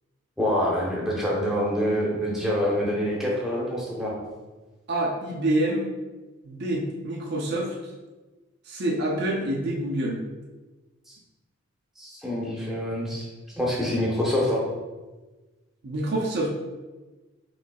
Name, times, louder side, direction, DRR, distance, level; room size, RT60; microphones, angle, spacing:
voice 1, 0.4-4.1 12.0-13.3 13.6-14.6, equal, ahead, -5 dB, 0.9 m, -26 dB
voice 2, 4.9-5.9 6.4-7.7 8.7-10.2 15.8-16.5, right 1 dB, 50° right, -2 dB, 0.5 m, -27 dB
5.2 x 3.1 x 2.3 m, 1.2 s
head